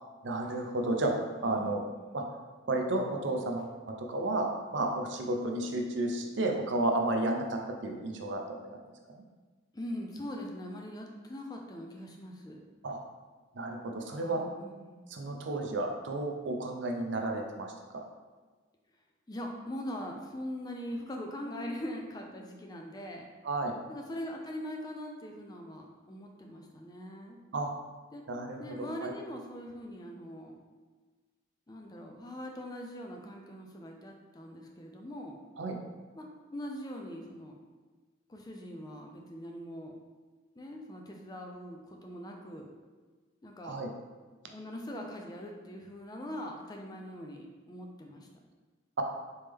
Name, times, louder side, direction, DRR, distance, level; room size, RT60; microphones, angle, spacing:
voice 1, 0.2-1.8 2.1-2.2 2.7-8.4 9.1-9.2 12.8-13.0 13.5-14.4 15.1-18.0 23.4-23.8 27.5-27.7 28.3-29.1 35.6-35.8 43.6-43.9, right 2 dB, 65° right, 2 dB, 0.5 m, -32 dB
voice 2, 1.4-1.7 9.7-12.6 14.0-15.0 19.3-23.2 23.9-27.4 28.1-28.3 28.6-30.6 31.7-35.4 36.2-37.6 38.3-39.9 40.6-42.7 43.4-43.8 44.5-48.3, equal, 20° left, 1 dB, 0.4 m, -42 dB
4.2 x 3.4 x 3.5 m, 1.3 s
head